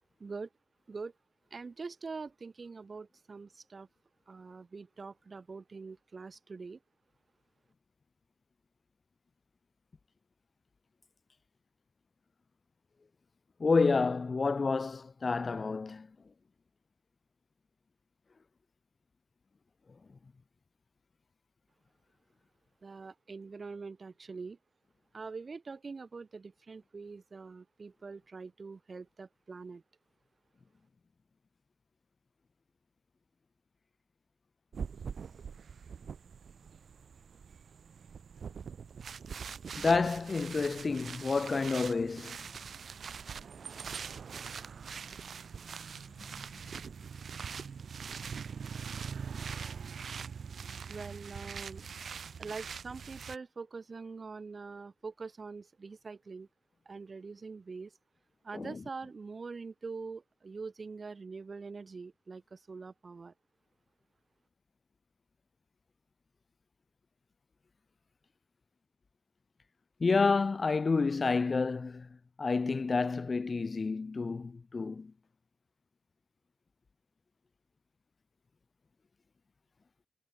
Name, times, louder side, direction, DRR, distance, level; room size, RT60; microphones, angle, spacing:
voice 1, 1.5-3.9 4.3-6.8 22.8-24.6 25.1-29.8 50.9-51.8 52.4-56.5 56.9-57.9 58.4-63.3, right 4 dB, 45° right, 3.6 m, -44 dB
voice 2, 13.6-16.1 39.8-42.4 58.5-58.8 70.0-72.1 72.4-75.1, left 4 dB, 40° left, 0.5 m, -29 dB
sound 1, 34.7-53.4, right 6 dB, 65° right, 2.9 m, -43 dB
cardioid pair, 60°, 0 cm